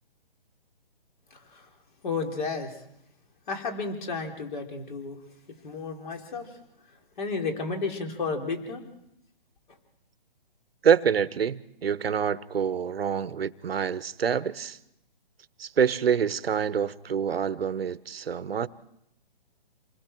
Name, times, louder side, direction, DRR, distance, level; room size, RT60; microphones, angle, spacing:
voice 1, 1.3-1.7 2.0-2.8 3.5-5.2 5.5-6.6 7.2-8.8 9.7-9.8, left 4 dB, 55° left, 3.9 m, -32 dB
voice 2, 10.8-14.8 15.6-18.7, right 7 dB, 85° right, 1.0 m, -26 dB
27.5 x 21.0 x 4.6 m
hypercardioid pair, 160°, 29 cm